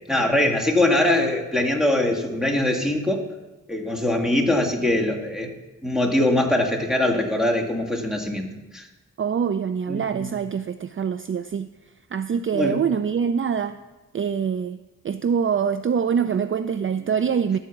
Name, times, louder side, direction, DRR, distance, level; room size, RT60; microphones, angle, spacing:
voice 1, 0.1-3.2 3.7-5.5 5.8-8.5 8.7-8.9 9.9-10.3 12.5-12.8, left 1 dB, ahead, 2 dB, 1.9 m, -22 dB
voice 2, 9.2-11.7 12.1-13.8 14.1-17.6, right 7 dB, 40° right, 12 dB, 0.4 m, -24 dB
13.5 x 4.8 x 7.1 m, 1.1 s
cardioid pair, 55°, 31 cm